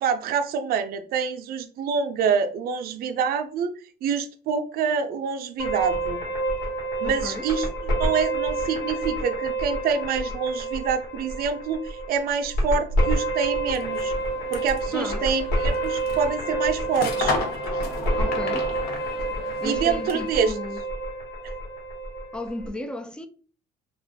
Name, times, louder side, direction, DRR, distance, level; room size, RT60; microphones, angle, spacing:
voice 1, 0.0-3.7 4.0-6.2 7.0-7.7 8.0-14.1 14.5-17.4 17.7-17.8 19.6-20.5 21.4-21.5, right 6 dB, 65° right, 0.5 m, -26 dB
sound 1, 5.6-22.7, right 1 dB, 80° left, 1.4 m, -28 dB
voice 2, 7.0-7.5 14.9-15.3 18.2-18.7 19.6-20.8 22.3-23.3, left 1 dB, 5° left, 0.3 m, -34 dB
sound 2, 13.6-20.4, left 3 dB, 65° left, 0.7 m, -34 dB
2.5 x 2.3 x 3.4 m
cardioid pair, 110°, 17 cm